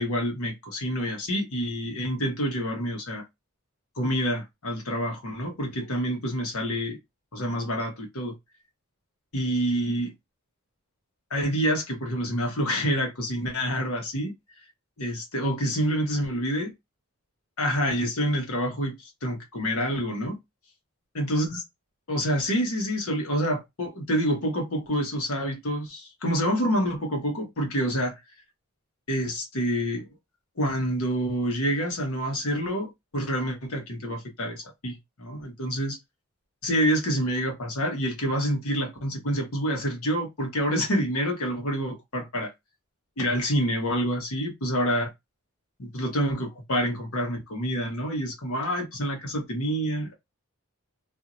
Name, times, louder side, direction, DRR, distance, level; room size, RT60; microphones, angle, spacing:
voice 1, 0.0-3.2 4.0-7.0 7.3-8.3 9.3-10.1 11.3-14.3 15.0-16.7 17.6-20.4 21.2-21.6 22.1-28.1 29.1-30.1 30.6-36.0 36.6-42.5 43.2-45.1 45.8-50.1, equal, 75° left, 1.1 m, -27 dB
2.6 x 2.6 x 2.9 m
head